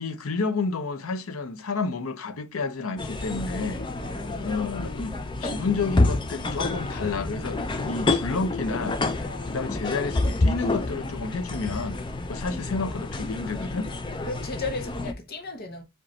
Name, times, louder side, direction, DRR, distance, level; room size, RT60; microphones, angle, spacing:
voice 1, 0.0-3.9 4.4-9.0 9.5-13.9, left 4 dB, 80° left, 0.6 m, -30 dB
sound 1, 3.0-15.1, left 2 dB, 20° left, 0.4 m, -28 dB
voice 2, 4.0-4.5 9.2-9.5 14.2-15.8, left 3 dB, 45° left, 0.7 m, -35 dB
5.1 x 2.3 x 4.0 m
head